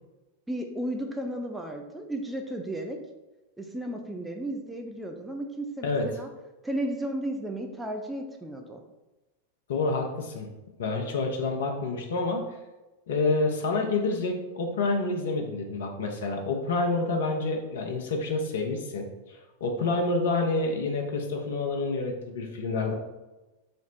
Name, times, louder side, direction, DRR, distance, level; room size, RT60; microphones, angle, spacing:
voice 1, 0.5-3.0 3.6-6.3 6.6-8.8, right 1 dB, 5° right, 3 dB, 0.4 m, -34 dB
voice 2, 9.7-10.5 10.8-12.4 13.1-22.9, left 3 dB, 60° left, 3 dB, 0.6 m, -28 dB
4.2 x 2.0 x 4.1 m, 1.1 s
figure-of-eight pair, 90°, 0 cm